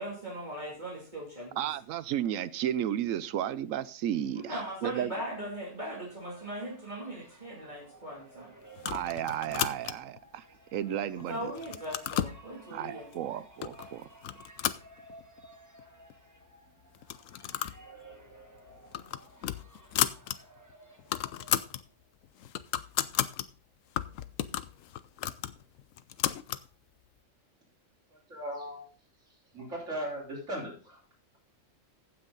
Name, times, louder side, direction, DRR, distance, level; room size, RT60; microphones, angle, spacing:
voice 1, 0.0-1.7 4.3-8.5 11.1-13.1, right 1 dB, 35° right, -5 dB, 2.8 m, -39 dB
voice 2, 1.6-5.1 8.9-10.4 10.7-11.5 12.7-14.0, right 11 dB, 85° right, 16 dB, 1.0 m, -33 dB
sound 1, 5.3-21.9, right 1 dB, 15° right, 1.2 m, -55 dB
sound 2, 8.8-10.2 10.7-11.2 11.5-12.4 13.1-13.2 13.6-13.9 14.2-15.5 15.8-15.9 16.1-16.2 17.0-17.8 18.1-18.3 18.7-20.4 20.7-20.8 21.0-21.8 22.2-23.5 24.0-26.7, left 11 dB, 80° left, 1.0 m, -33 dB
voice 3, 28.3-28.8 29.5-31.0, equal, 70° right, -5 dB, 4.3 m, -37 dB
15.5 x 6.1 x 3.8 m, 0.40 s
omnidirectional pair, 1.3 m